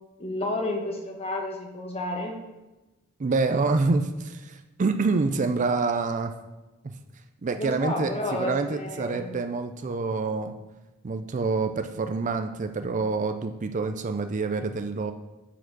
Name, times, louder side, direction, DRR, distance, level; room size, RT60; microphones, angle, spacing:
voice 1, 0.2-2.4 7.6-9.3, left 2 dB, 30° left, 2 dB, 1.3 m, -31 dB
voice 2, 3.2-6.3 6.8-6.9 7.4-10.5 11.0-15.1, right 4 dB, 35° right, 7 dB, 0.4 m, -27 dB
8.8 x 4.7 x 6.0 m, 1.1 s
head